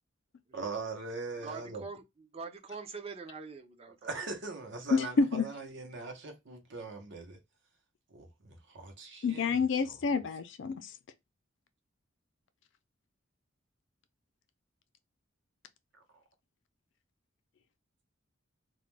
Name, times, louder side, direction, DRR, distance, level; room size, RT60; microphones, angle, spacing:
voice 1, 0.5-1.8 4.0-7.4 8.1-9.6, right 4 dB, 60° right, 0.8 m, -41 dB
voice 2, 1.4-4.1, right 4 dB, 30° right, 0.5 m, -44 dB
voice 3, 4.9-5.5 9.2-11.0, left 4 dB, 65° left, 0.4 m, -28 dB
2.3 x 2.1 x 3.1 m
head